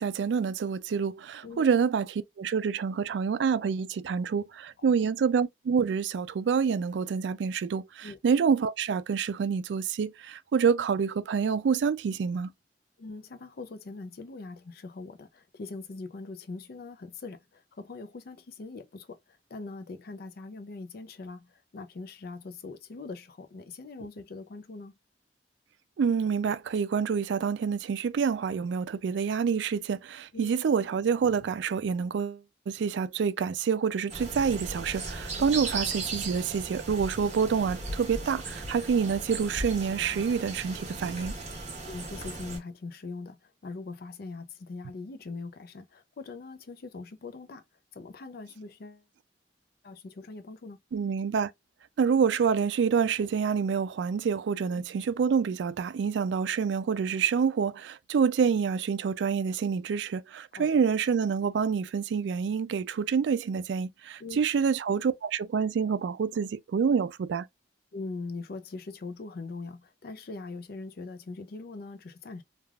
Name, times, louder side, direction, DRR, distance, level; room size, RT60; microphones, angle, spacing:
voice 1, 0.0-12.5 26.0-41.3 50.9-51.5 52.0-67.5, right 6 dB, 85° right, 0.3 m, -27 dB
voice 2, 4.8-5.1 8.0-8.2 13.0-24.9 30.3-30.5 35.4-35.6 41.9-47.6 47.9-49.1 49.8-50.8 54.7-54.8 60.5-60.7 64.2-64.4 67.9-72.4, left 3 dB, 60° left, 0.5 m, -42 dB
sound 1, 34.1-42.6, right 3 dB, 40° right, 1.2 m, -37 dB
3.3 x 2.4 x 2.3 m
head